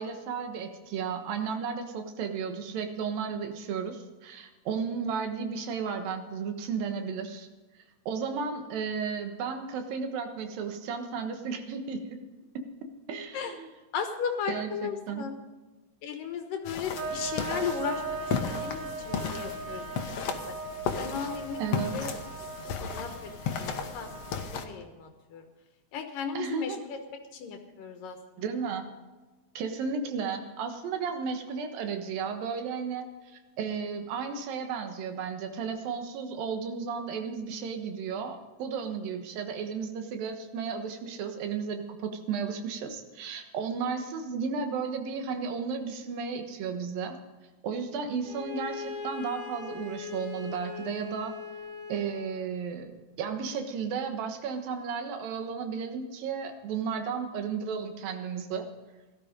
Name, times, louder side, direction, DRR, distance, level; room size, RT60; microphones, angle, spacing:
voice 1, 0.0-7.5 8.1-12.2 13.1-13.7 14.5-15.2 21.6-22.1 26.3-26.8 28.4-28.8 29.5-47.2 47.6-51.3 51.9-52.9 53.2-58.7, right 6 dB, 90° right, 6 dB, 3.1 m, -34 dB
voice 2, 13.9-15.3 16.0-18.2 18.5-19.9 20.2-20.4 21.0-22.2 22.7-23.3 23.6-24.1 24.4-25.4 25.9-27.0 27.3-28.2, left 6 dB, 75° left, 5 dB, 2.7 m, -35 dB
sound 1, 16.7-24.7, left 7 dB, 60° left, 1.8 m, -35 dB
sound 2, 17.0-24.6, right 4 dB, 60° right, 2.2 m, -39 dB
Bowed string instrument, 48.2-52.4, left 5 dB, 15° right, 3.7 m, -40 dB
17.0 x 12.5 x 5.2 m, 1.2 s
omnidirectional pair, 3.9 m